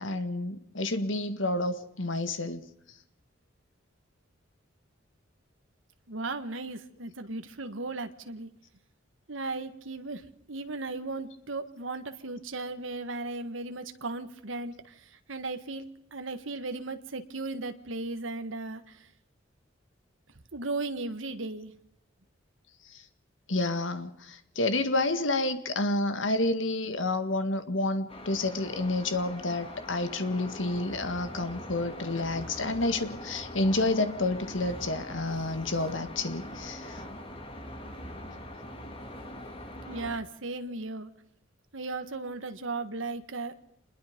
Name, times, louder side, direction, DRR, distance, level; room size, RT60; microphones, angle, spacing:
voice 1, 0.0-2.7 23.5-37.0, left 2 dB, 80° left, 10 dB, 1.9 m, -29 dB
voice 2, 6.1-8.5 9.3-10.2 10.5-14.7 15.3-19.0 20.5-21.7 39.9-41.1 41.7-43.5, right 3 dB, 85° right, 8 dB, 1.6 m, -36 dB
sound 1, 28.1-40.2, left 1 dB, 30° left, 3.0 m, -42 dB
27.0 x 21.0 x 5.3 m, 0.73 s
head